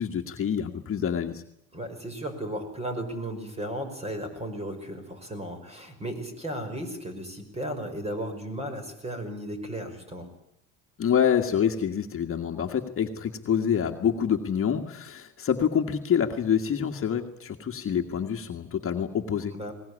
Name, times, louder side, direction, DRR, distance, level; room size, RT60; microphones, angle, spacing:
voice 1, 0.0-1.4 11.0-19.5, left 8 dB, 40° left, 3 dB, 1.8 m, -26 dB
voice 2, 1.7-10.3 19.5-19.7, right 1 dB, 20° right, 7 dB, 5.5 m, -35 dB
21.5 x 19.5 x 9.9 m, 0.73 s
cardioid pair, 135°, 34 cm